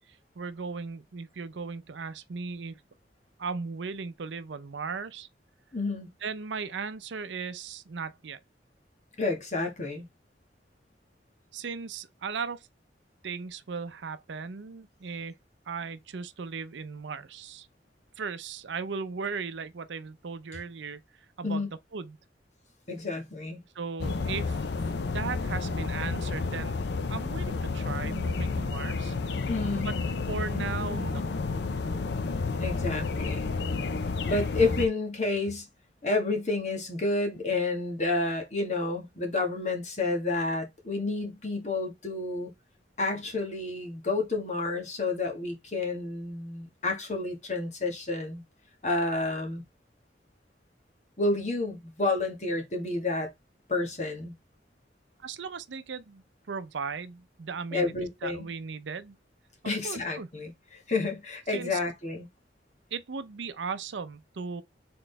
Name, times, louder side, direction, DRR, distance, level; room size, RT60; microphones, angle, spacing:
voice 1, 0.4-2.8 3.4-5.3 6.2-8.4 11.5-12.7 13.2-15.4 15.7-17.7 18.2-21.0 21.4-21.7 21.9-22.2 23.7-24.7 25.1-26.8 27.1-29.2 29.8-29.9 30.3-31.3 55.2-57.9 58.2-59.2 59.8-60.3 61.5-61.8 62.9-64.6, right 5 dB, 80° right, 0.5 m, -37 dB
voice 2, 5.7-6.1 9.2-10.0 21.4-21.7 22.9-23.6 29.5-30.0 32.6-33.5 34.2-35.7 36.0-42.5 43.0-48.4 48.8-49.6 51.2-53.3 53.7-54.3 57.7-58.5 59.6-62.3, left 3 dB, 40° left, 1.5 m, -30 dB
sound 1, 24.0-34.9, left 4 dB, 65° left, 0.5 m, -31 dB
4.1 x 3.8 x 3.3 m
head